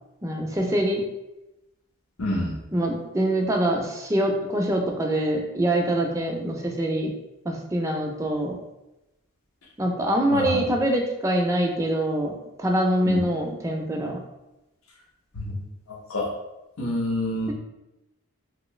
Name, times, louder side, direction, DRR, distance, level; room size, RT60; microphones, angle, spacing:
voice 1, 0.2-1.0 2.7-7.1 7.4-8.6 9.8-12.3 12.6-14.2, right 1 dB, 15° right, 1 dB, 0.3 m, -24 dB
voice 2, 2.2-2.5 10.3-10.6 13.0-13.2 15.3-15.6 15.9-16.3 16.8-17.5, left 1 dB, 70° left, -3 dB, 0.8 m, -27 dB
3.1 x 2.7 x 3.0 m, 0.96 s
head